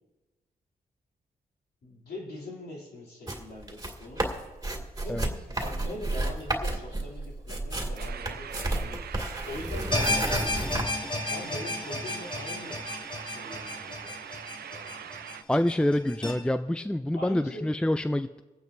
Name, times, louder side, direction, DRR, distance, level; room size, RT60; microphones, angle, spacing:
voice 1, 1.8-4.3 5.0-9.1 9.4-10.9 11.2-12.9 13.2-14.3 14.7-15.1 17.1-17.7, left 1 dB, 75° left, -3 dB, 3.1 m, -42 dB
sound 1, 3.3-10.8, right 2 dB, 20° right, 2.3 m, -32 dB
sound 2, 8.0-15.4, right 8 dB, 70° right, 0.5 m, -42 dB
sound 3, 9.9-16.3, left 2 dB, 30° left, 2.8 m, -33 dB
voice 2, 15.5-18.4, left 1 dB, 5° left, 11 dB, 0.4 m, -26 dB
27.5 x 9.1 x 2.7 m, 1.2 s
cardioid pair, 50°, 17 cm